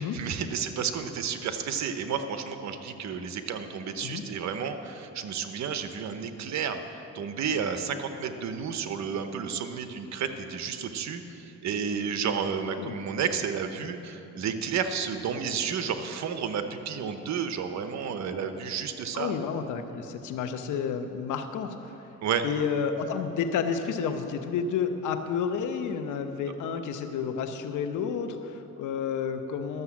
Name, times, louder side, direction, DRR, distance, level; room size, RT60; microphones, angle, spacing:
voice 1, 0.0-6.8 7.1-19.3 22.2-22.4, right 7 dB, 65° right, 8 dB, 0.9 m, -31 dB
voice 2, 19.1-22.1 22.4-29.8, left 6 dB, 80° left, 8 dB, 0.9 m, -31 dB
12.0 x 6.8 x 7.3 m, 3.0 s
cardioid pair, 90°, 30 cm